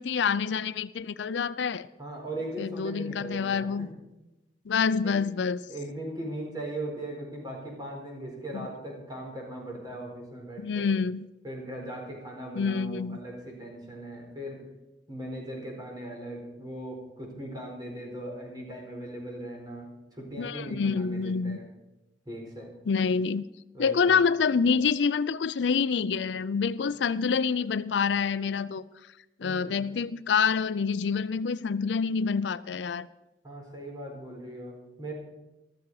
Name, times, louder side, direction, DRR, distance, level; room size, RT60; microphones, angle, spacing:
voice 1, 0.0-1.9 2.6-3.9 4.7-5.6 8.5-8.7 10.6-11.3 12.6-13.2 20.4-21.6 22.9-23.4 23.8-28.8 29.4-33.1, left 5 dB, 75° left, 17 dB, 0.4 m, -27 dB
voice 2, 2.0-3.9 5.0-5.1 5.7-10.9 11.4-14.6 15.1-21.7 22.3-22.7 23.7-24.1 29.4-29.8 33.4-35.1, right 1 dB, 25° right, -1 dB, 4.4 m, -39 dB
14.5 x 13.0 x 4.8 m, 0.99 s
head